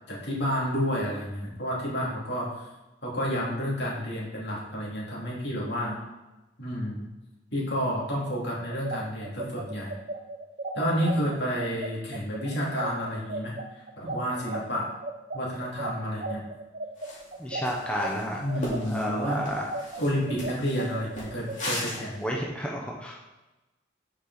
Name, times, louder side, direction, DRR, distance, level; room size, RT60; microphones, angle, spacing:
voice 1, 0.1-2.7 3.0-6.0 6.6-7.1 7.5-9.9 10.7-14.9 15.3-16.5 18.4-19.5 20.0-22.3, equal, 60° left, -5 dB, 2.5 m, -30 dB
sound 1, 8.7-18.1 18.5-21.6, right 2 dB, 45° right, 0.5 m, -36 dB
sound 2, 17.0-17.3 17.6-22.2, left 1 dB, 40° left, 2.2 m, -37 dB
voice 2, 17.4-18.4 18.9-19.7 22.2-23.2, equal, 5° left, -3 dB, 0.7 m, -31 dB
8.4 x 5.0 x 4.0 m, 1.1 s
head